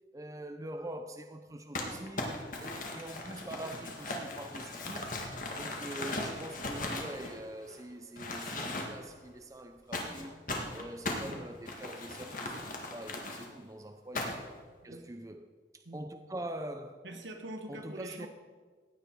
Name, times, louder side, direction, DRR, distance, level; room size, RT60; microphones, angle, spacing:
voice 1, 0.1-5.2 5.5-10.4 10.7-12.6 12.9-14.4 14.8-17.1 17.7-18.3, right 1 dB, 15° right, 0.5 m, -44 dB
Crumpling crinkling, 1.7-7.8 8.2-9.1 9.9-13.5 14.1-14.6, left 2 dB, 45° left, 1.8 m, -38 dB
voice 2, 17.0-18.3, right 1 dB, 75° right, 1.5 m, -45 dB
16.0 x 9.4 x 4.7 m
head